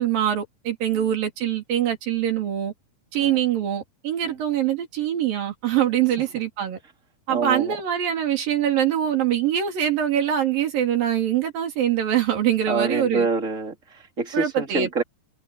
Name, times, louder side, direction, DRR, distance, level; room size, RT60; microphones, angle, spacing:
voice 1, 0.0-2.7 3.1-6.8 7.3-13.3 14.3-15.0, right 10 dB, 70° right, 4.9 m, -24 dB
voice 2, 7.3-7.8 12.7-15.0, right 4 dB, 20° right, 3.5 m, -26 dB
omnidirectional pair, 4.2 m